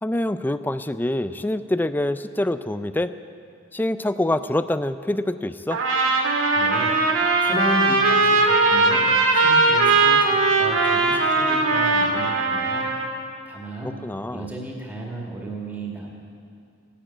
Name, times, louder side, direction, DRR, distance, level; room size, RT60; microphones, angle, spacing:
voice 1, 0.0-3.1 3.7-5.8 13.8-14.5, left 1 dB, 10° left, 12 dB, 0.4 m, -25 dB
Trumpet, 5.7-13.1, right 3 dB, 80° right, 2.2 m, -19 dB
voice 2, 6.5-12.9 13.5-14.0 14.3-16.1, right 1 dB, 10° right, -3 dB, 2.2 m, -33 dB
15.5 x 10.0 x 9.1 m, 2.4 s
head